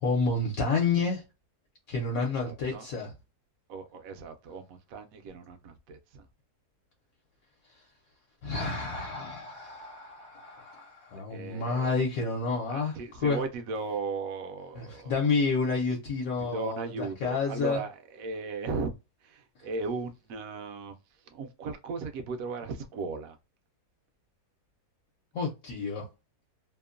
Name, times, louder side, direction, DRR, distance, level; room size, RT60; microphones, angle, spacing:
voice 1, 0.0-1.2 1.9-3.1 8.4-13.4 14.8-17.8 25.3-26.1, left 4 dB, 65° left, 1.1 m, -29 dB
voice 2, 2.4-2.9 3.7-6.3 11.3-11.9 12.7-15.3 16.5-18.9 19.2-21.0 21.3-23.4, right 4 dB, 70° right, 0.9 m, -36 dB
2.9 x 2.1 x 2.3 m
omnidirectional pair, 1.7 m